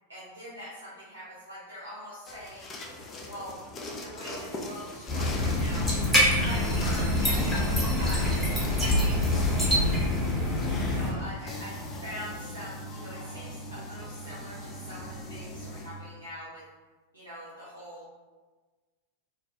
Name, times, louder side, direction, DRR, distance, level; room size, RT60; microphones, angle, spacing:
voice 1, 0.1-2.7 3.3-3.5 4.0-7.7 8.0-8.3 8.6-9.9 10.8-16.6 17.1-18.1, equal, 80° right, -9 dB, 0.5 m, -43 dB
sound 1, 2.3-16.0, left 1 dB, 25° left, 0.4 m, -36 dB
sound 2, 5.1-11.1, left 1 dB, ahead, 0.8 m, -26 dB
2.4 x 2.1 x 2.8 m, 1.3 s
figure-of-eight pair, 90°, 0 cm